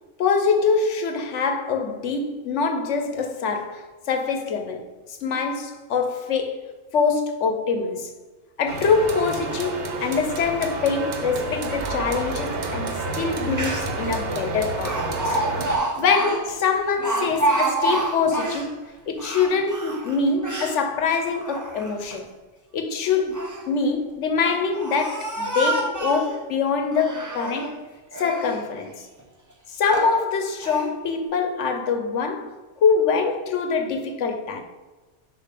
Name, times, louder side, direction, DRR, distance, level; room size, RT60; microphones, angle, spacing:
voice 1, 0.2-4.8 5.2-8.1 8.6-15.4 16.0-18.7 19.1-22.3 22.7-23.4 23.7-27.8 28.2-29.1 29.7-34.6, left 5 dB, 80° left, 1.1 m, -24 dB
sound 1, 8.7-15.8, right 3 dB, 60° right, 1.0 m, -29 dB
Speech, 13.3-13.4 13.5-14.1 14.8-18.7 19.1-20.8 21.3-22.2 23.1-23.7 24.4-26.4 26.9-27.7 28.1-28.6 29.2-29.3 29.8-30.2 30.6-30.9, right 2 dB, 20° right, 0.7 m, -28 dB
7.0 x 2.8 x 5.8 m
omnidirectional pair, 1.2 m